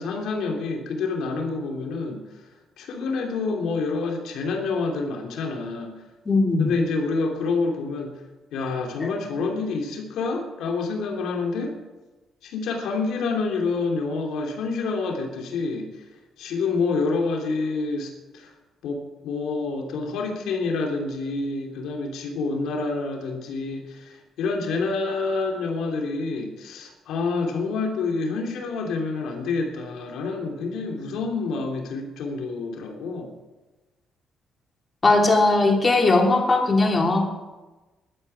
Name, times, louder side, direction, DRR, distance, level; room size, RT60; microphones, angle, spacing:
voice 1, 0.0-2.2 2.8-5.9 6.6-8.2 8.5-11.7 12.4-16.0 16.4-18.5 18.8-33.3, left 4 dB, 80° left, 2 dB, 3.0 m, -28 dB
voice 2, 6.3-6.8 9.0-9.1 35.0-37.3, left 2 dB, 30° left, 3 dB, 2.9 m, -19 dB
12.5 x 10.5 x 9.1 m, 1.2 s
cardioid pair, 90°, 0 cm